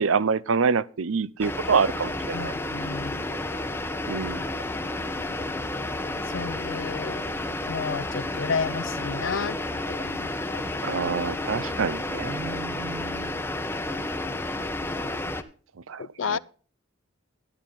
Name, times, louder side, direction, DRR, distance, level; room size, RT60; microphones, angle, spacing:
voice 1, 0.0-2.5 4.1-4.5 10.8-13.3 15.9-16.4, right 5 dB, 90° right, 0.6 m, -26 dB
sound 1, 1.4-15.4, left 2 dB, 10° left, 0.8 m, -31 dB
voice 2, 2.3-3.2 6.3-7.2 7.7-9.6 9.9-10.7 16.0-16.4, left 6 dB, 70° left, 0.5 m, -32 dB
12.5 x 10.0 x 3.7 m
head